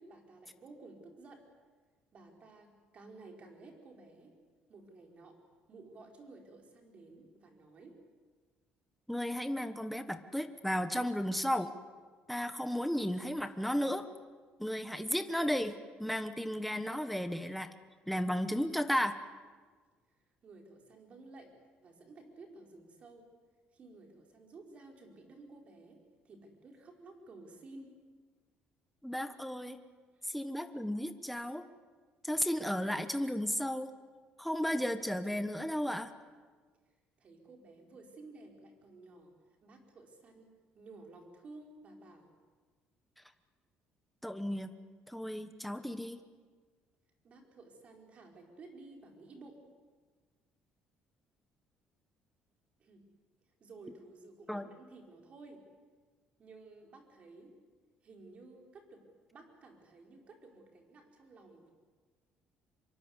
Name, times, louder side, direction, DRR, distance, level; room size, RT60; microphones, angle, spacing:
voice 1, 0.0-1.4 2.1-4.3 4.7-5.4 5.7-8.0 20.4-23.3 23.7-28.0 30.1-30.2 37.2-39.3 39.6-42.3 47.2-49.6 52.8-53.1 53.6-55.6 56.4-57.5 58.0-59.0 59.3-61.7, right 3 dB, 40° right, 2 dB, 5.0 m, -54 dB
voice 2, 9.1-11.7 12.3-14.1 14.6-17.7 18.1-19.2 29.0-29.8 30.2-31.6 32.2-33.9 34.4-36.1 44.2-44.7 45.1-46.2 54.5-54.7, equal, ahead, 8 dB, 1.2 m, -34 dB
25.0 x 23.5 x 8.2 m, 1.5 s
cardioid pair, 135°, 3 cm